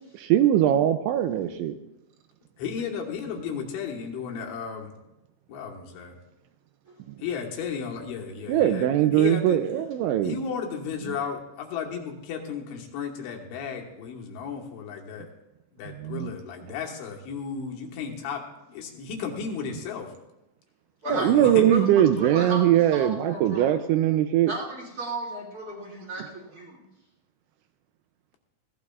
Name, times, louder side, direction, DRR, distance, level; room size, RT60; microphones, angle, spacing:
voice 1, 0.1-1.8 8.5-10.4 16.0-16.3 21.1-24.5, right 11 dB, 85° right, 8 dB, 2.7 m, -21 dB
voice 2, 2.6-4.9 5.5-6.2 7.2-8.9 9.1-9.6 10.2-15.3 15.7-18.4 18.7-20.1 21.1-21.7, left 6 dB, 70° left, 0 dB, 3.5 m, -34 dB
voice 3, 21.0-21.8 22.1-23.7 24.5-26.8, right 1 dB, 35° right, -4 dB, 1.5 m, -34 dB
20.5 x 16.0 x 2.4 m, 0.93 s
omnidirectional pair, 5.8 m